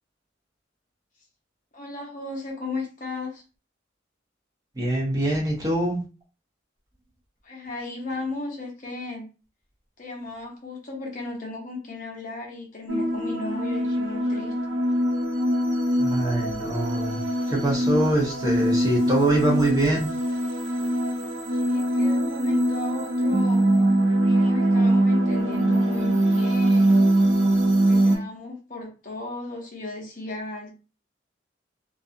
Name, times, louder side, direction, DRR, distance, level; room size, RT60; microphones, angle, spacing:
voice 1, 1.7-3.4 7.4-9.3 10.0-14.8 21.5-23.7 24.2-27.0 27.9-30.7, left 2 dB, 45° left, 0 dB, 0.7 m, -35 dB
voice 2, 4.8-6.0 16.0-17.2 17.5-20.1, right 1 dB, 20° right, -3 dB, 0.7 m, -23 dB
sound 1, 12.9-28.2, right 1 dB, 80° right, 0.6 m, -22 dB
2.4 x 2.3 x 2.5 m, 0.33 s
head